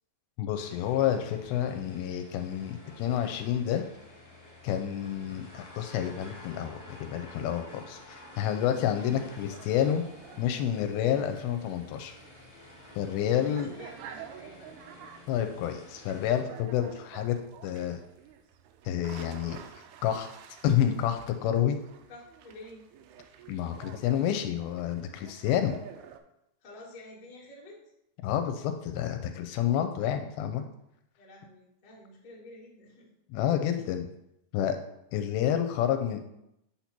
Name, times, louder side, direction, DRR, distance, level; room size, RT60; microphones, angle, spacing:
voice 1, 0.4-3.8 4.6-8.0 8.4-10.0 10.4-12.2 13.0-13.7 15.3-17.4 17.6-18.0 18.9-19.6 20.0-20.3 20.6-21.8 23.5-25.8 28.2-30.6 33.3-34.1 34.5-34.8 35.1-36.2, left 10 dB, 80° left, 7 dB, 2.4 m, -29 dB
sound 1, 0.5-16.4, left 1 dB, 15° left, 0.6 m, -51 dB
sound 2, 9.2-26.2, right 9 dB, 85° right, 2.5 m, -50 dB
sound 3, 9.6-12.1 12.3-12.4 12.7-12.8 13.1-13.2 14.5-14.6 16.3-17.1, right 1 dB, 35° right, 0.4 m, -52 dB
voice 2, 13.4-14.9 22.1-22.8 26.6-27.9 31.2-33.1 33.6-33.8, left 1 dB, 40° left, -4 dB, 1.0 m, -50 dB
8.5 x 2.9 x 5.9 m, 0.82 s
omnidirectional pair, 4.5 m